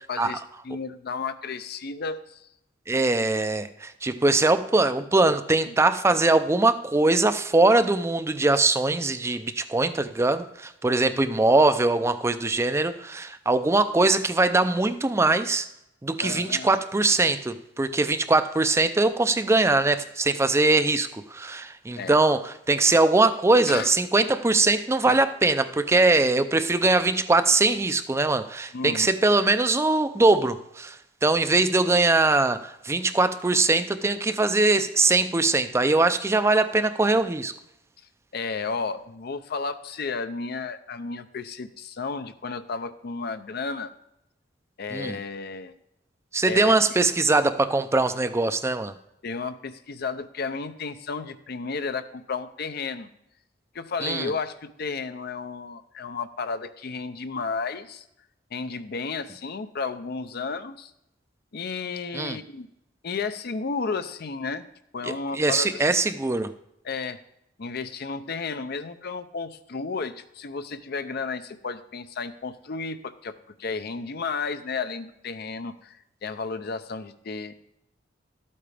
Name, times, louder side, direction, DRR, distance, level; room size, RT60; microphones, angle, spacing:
voice 1, 0.1-2.5 5.2-5.3 5.7-5.8 16.2-16.7 22.0-22.2 23.7-23.9 25.1-25.2 28.7-29.1 38.3-43.9 44.8-45.7 46.5-46.7 49.2-53.1 53.7-58.0 58.5-60.9 61.5-62.7 63.0-64.6 64.9-65.9 66.8-67.2 67.6-77.5, left 4 dB, 55° left, 11 dB, 0.6 m, -33 dB
voice 2, 2.9-15.7 16.0-37.5 44.9-45.2 46.3-48.9 54.0-54.3 62.1-62.4 65.0-66.5, right 2 dB, 15° right, 11 dB, 0.4 m, -22 dB
12.0 x 8.6 x 3.4 m, 0.81 s
head